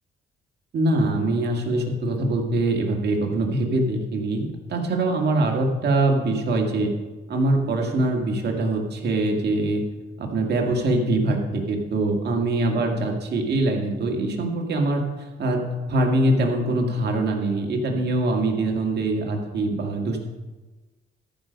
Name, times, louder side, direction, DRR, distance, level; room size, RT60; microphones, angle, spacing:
voice 1, 0.7-6.9 7.3-9.8 10.2-20.2, right 2 dB, 55° right, 2 dB, 1.9 m, -23 dB
14.0 x 5.2 x 5.3 m, 1.2 s
cardioid pair, 90°, 20 cm